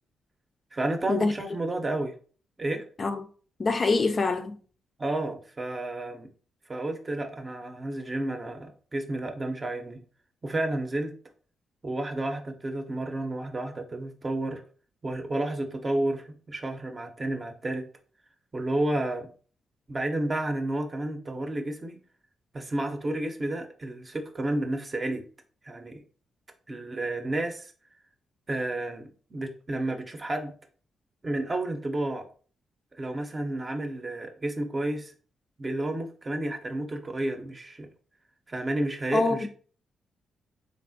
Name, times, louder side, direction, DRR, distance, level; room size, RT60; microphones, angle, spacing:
voice 1, 0.7-2.1 2.6-2.9 5.0-6.3 6.7-10.0 10.4-11.1 11.8-14.6 15.0-17.9 18.5-19.3 19.9-22.0 22.5-25.2 25.6-26.0 26.7-27.7 28.5-30.5 31.2-32.2 32.9-35.1 35.6-37.9 38.5-39.5, right 1 dB, 30° right, 0.6 m, -31 dB
voice 2, 3.6-4.5 39.1-39.5, left 3 dB, 45° left, 0.3 m, -25 dB
3.3 x 2.4 x 2.6 m
cardioid pair, 70°, 0 cm